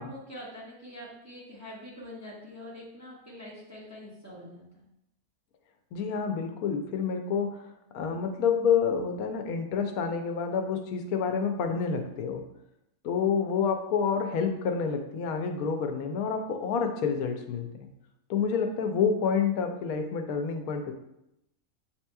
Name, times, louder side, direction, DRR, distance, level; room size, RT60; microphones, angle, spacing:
voice 1, 0.0-4.9, left 1 dB, 15° right, -7 dB, 1.0 m, -45 dB
voice 2, 5.9-7.6 7.9-12.4 13.0-17.9 18.3-20.9, left 6 dB, 90° left, 5 dB, 1.0 m, -28 dB
7.2 x 2.9 x 2.2 m, 0.84 s
omnidirectional pair, 1.5 m